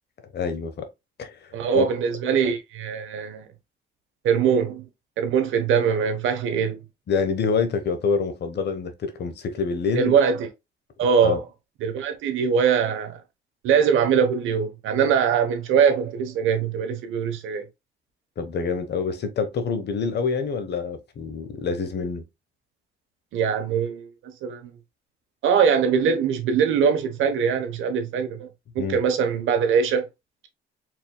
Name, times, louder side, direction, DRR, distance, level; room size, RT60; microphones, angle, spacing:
voice 1, 0.3-0.9 1.2-1.9 7.1-10.1 11.2-11.4 18.4-22.2 28.8-29.0, left 5 dB, 60° left, 1.2 m, -26 dB
voice 2, 1.5-3.5 4.2-4.9 5.2-6.8 9.9-10.5 11.0-11.4 11.8-13.2 13.6-17.6 23.3-24.7 25.4-28.5 28.7-30.0, right 7 dB, 90° right, 1.1 m, -22 dB
4.7 x 3.6 x 2.2 m
cardioid pair, 90°, 20 cm